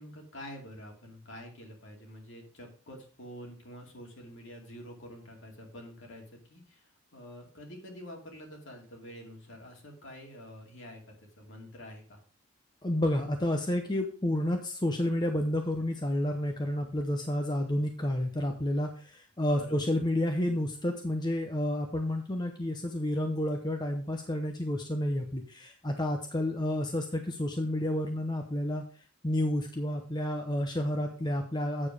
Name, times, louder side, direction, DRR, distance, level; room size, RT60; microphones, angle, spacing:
voice 1, 0.0-12.2 19.5-19.8, equal, 60° left, 1 dB, 2.5 m, -47 dB
voice 2, 12.8-28.8 29.2-31.9, left 1 dB, 20° left, 4 dB, 0.8 m, -30 dB
8.8 x 7.2 x 4.9 m, 0.40 s
head